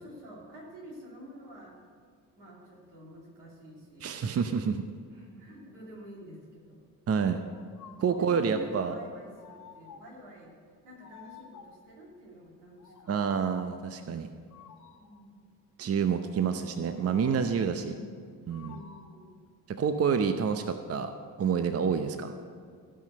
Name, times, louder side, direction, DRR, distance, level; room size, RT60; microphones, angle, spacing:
voice 1, 0.0-1.8 2.4-4.2 5.1-6.8 8.1-13.4 15.0-15.5 17.6-19.4 21.8-22.3, equal, 70° right, -3 dB, 2.9 m, -49 dB
voice 2, 4.0-4.9 7.1-7.4 8.0-8.9 13.1-14.3 15.8-17.9 18.5-18.7 19.7-21.1 21.4-22.3, right 6 dB, 30° right, 9 dB, 0.7 m, -28 dB
sound 1, 7.5-8.4 9.3-10.2 11.0-11.9 12.8-13.6 14.5-15.2 16.8-17.6 18.5-19.3, left 7 dB, 40° left, 1.2 m, -52 dB
16.5 x 5.6 x 6.7 m, 2.1 s
figure-of-eight pair, 40°, 47 cm